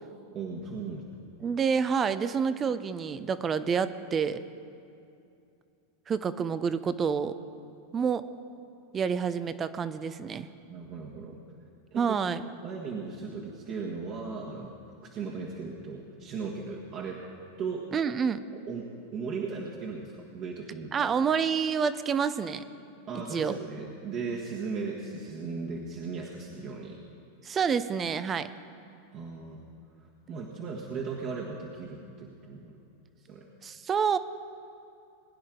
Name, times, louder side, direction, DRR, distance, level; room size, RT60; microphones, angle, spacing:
voice 1, 0.3-1.2 10.7-11.4 11.9-12.1 12.4-14.7 15.0-17.2 17.6-17.9 18.5-21.1 23.1-27.0 29.1-29.6 30.3-32.8 33.2-33.5, right 4 dB, 40° right, -3 dB, 1.6 m, -37 dB
voice 2, 1.4-4.4 6.1-7.3 7.9-8.3 8.9-10.5 12.0-12.4 17.9-18.4 20.9-22.6 23.3-23.6 27.4-28.5 33.6-34.2, right 6 dB, 25° right, 13 dB, 0.7 m, -28 dB
21.5 x 10.0 x 3.8 m, 2.6 s
hypercardioid pair, 100°, 0 cm